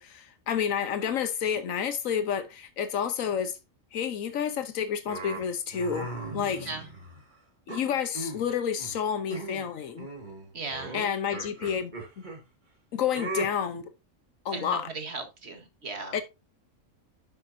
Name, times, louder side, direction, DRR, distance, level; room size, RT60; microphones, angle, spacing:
voice 1, 0.0-3.6 3.9-6.7 7.7-10.1 10.9-11.9 12.9-13.9 14.4-14.9 16.1-16.2, left 8 dB, 90° left, 1.3 m, -30 dB
sound 1, 5.1-7.2 7.7-8.5 8.8-9.0 9.3-9.7 10.0-12.4 13.1-13.5, right 2 dB, 35° right, 2.2 m, -38 dB
voice 2, 10.5-11.0 14.5-16.2, right 3 dB, 55° right, 1.9 m, -37 dB
10.5 x 6.8 x 2.7 m
omnidirectional pair, 1.3 m